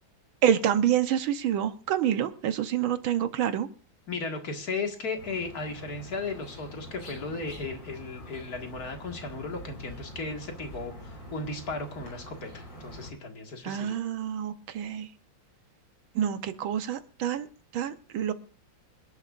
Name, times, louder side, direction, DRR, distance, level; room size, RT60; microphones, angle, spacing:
voice 1, 0.4-3.7 13.6-15.1 16.2-17.5 17.7-18.3, right 10 dB, 85° right, 10 dB, 1.8 m, -27 dB
voice 2, 4.1-14.0, left 3 dB, 50° left, 4 dB, 2.3 m, -36 dB
sound 1, 5.2-13.1, equal, 80° left, 6.3 m, -45 dB
26.0 x 11.0 x 2.5 m, 0.37 s
omnidirectional pair, 2.2 m